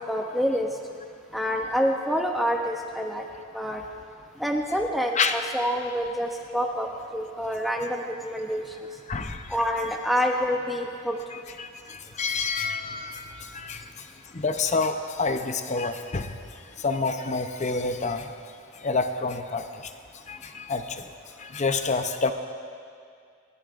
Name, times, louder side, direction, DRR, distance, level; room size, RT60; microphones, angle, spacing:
voice 1, 0.1-0.7 1.3-3.3 3.5-3.8 4.4-6.9 7.1-8.6 9.5-11.2, equal, ahead, 1 dB, 0.6 m, -27 dB
voice 2, 9.1-9.6 11.3-13.9 14.3-16.3 16.8-18.3 18.8-19.9 20.3-21.0 21.4-22.3, left 4 dB, 35° left, 7 dB, 0.7 m, -28 dB
29.5 x 12.5 x 2.5 m, 2.3 s
head